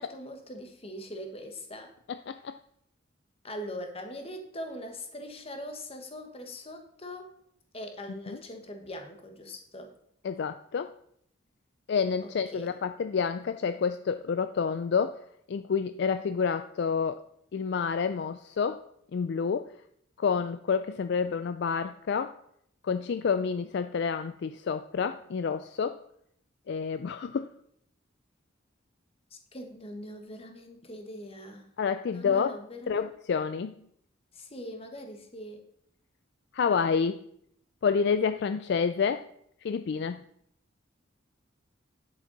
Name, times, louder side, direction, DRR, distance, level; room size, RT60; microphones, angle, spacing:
voice 1, 0.0-1.9 3.4-7.3 7.7-9.9 12.2-12.7 29.3-31.7 32.1-33.1 34.3-35.6, equal, 30° left, 5 dB, 1.3 m, -42 dB
voice 2, 2.3-2.6 10.2-10.9 11.9-15.2 15.5-17.2 17.5-18.8 19.1-19.7 20.2-22.3 22.8-26.0 26.7-27.5 31.8-32.6 32.9-33.7 36.5-37.2 37.8-39.3 39.6-40.2, left 6 dB, 60° left, 11 dB, 0.3 m, -28 dB
10.0 x 7.8 x 4.0 m, 0.70 s
head